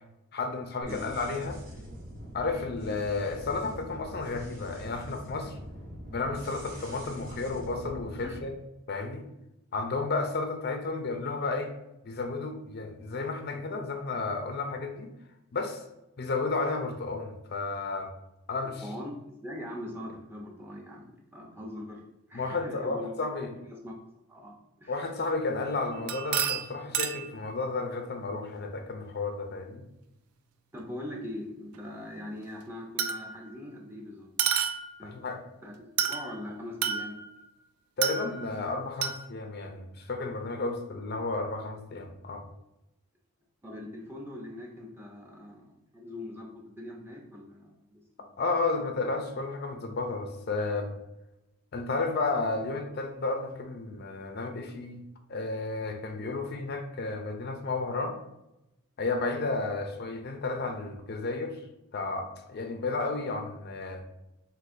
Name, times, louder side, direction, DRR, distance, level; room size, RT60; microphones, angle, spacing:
voice 1, 0.3-1.6 2.3-5.6 6.1-8.6 8.9-9.2 9.7-11.7 12.0-15.1 15.5-15.8 16.2-18.1 18.5-18.8 22.3-23.5 24.9-29.8 35.0-35.4 38.0-42.4 48.4-51.0 51.7-55.0 55.3-58.2 59.0-61.6 61.9-64.1, left 3 dB, 45° left, 5 dB, 0.5 m, -32 dB
sound 1, 0.8-8.4, equal, 40° right, 1.1 m, -44 dB
voice 2, 18.8-22.0 22.3-23.9 24.3-25.0 30.7-34.3 35.0-35.1 35.6-37.2 43.6-48.4, left 1 dB, 10° right, -1 dB, 0.6 m, -42 dB
sound 2, 25.9-27.4 30.8-30.9 33.0-33.5 34.4-35.1 36.0-36.4 36.8-37.4 38.0-38.6 39.0-39.2, right 8 dB, 80° right, 0.4 m, -30 dB
6.3 x 2.5 x 2.5 m, 0.90 s
head